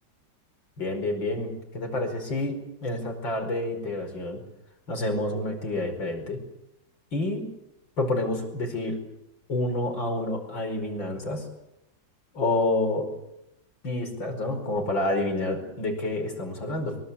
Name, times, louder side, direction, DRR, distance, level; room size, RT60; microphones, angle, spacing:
voice 1, 0.8-4.4 4.9-6.4 7.1-7.5 8.0-9.0 9.5-11.4 12.3-13.1 13.8-17.0, left 2 dB, 70° left, 5 dB, 5.8 m, -28 dB
24.0 x 23.0 x 8.4 m, 0.84 s
omnidirectional pair, 2.1 m